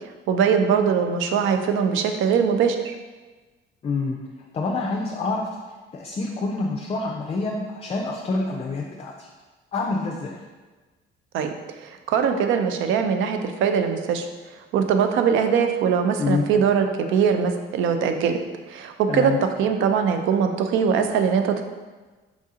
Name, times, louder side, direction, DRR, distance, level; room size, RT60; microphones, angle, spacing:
voice 1, 0.3-2.9 11.3-11.5 11.8-14.3 14.7-18.4 18.7-21.6, right 6 dB, 75° right, 6 dB, 0.5 m, -21 dB
voice 2, 3.8-4.2 4.5-5.5 5.9-9.3 9.7-10.4 16.2-16.4 19.1-19.4, left 3 dB, 30° left, 0 dB, 0.4 m, -27 dB
4.7 x 2.7 x 3.6 m, 1.3 s
cardioid pair, 115°, 20 cm